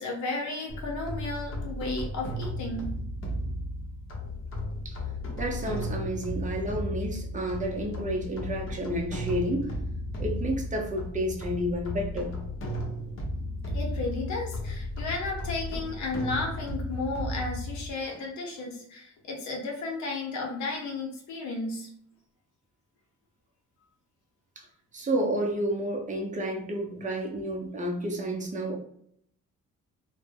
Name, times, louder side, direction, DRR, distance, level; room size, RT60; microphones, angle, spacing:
voice 1, 0.0-2.9 13.7-21.9 26.9-27.0, left 3 dB, 75° left, 0 dB, 0.8 m, -33 dB
sound 1, 0.7-17.9, left 1 dB, 45° left, 0.8 m, -34 dB
voice 2, 5.4-9.7 10.2-12.3 24.6-24.7 24.9-28.8, right 1 dB, 25° right, 1 dB, 0.6 m, -30 dB
2.1 x 2.1 x 3.3 m, 0.67 s
cardioid pair, 90°, 30 cm